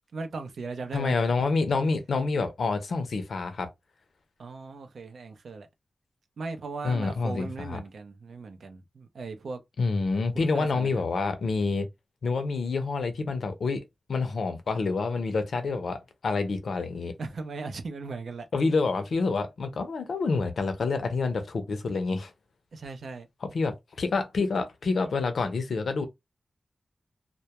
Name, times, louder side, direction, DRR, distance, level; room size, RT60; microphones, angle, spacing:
voice 1, 0.1-1.2 4.4-5.7 6.4-9.6 10.3-11.1 17.2-18.5 22.7-23.3, right 4 dB, 90° right, 0.5 m, -38 dB
voice 2, 0.9-3.7 6.8-7.8 9.8-11.9 12.2-13.8 14.1-17.1 18.5-22.3 23.4-26.0, left 4 dB, 80° left, 0.5 m, -28 dB
2.2 x 2.1 x 2.8 m
wide cardioid pair, 105°, 0 cm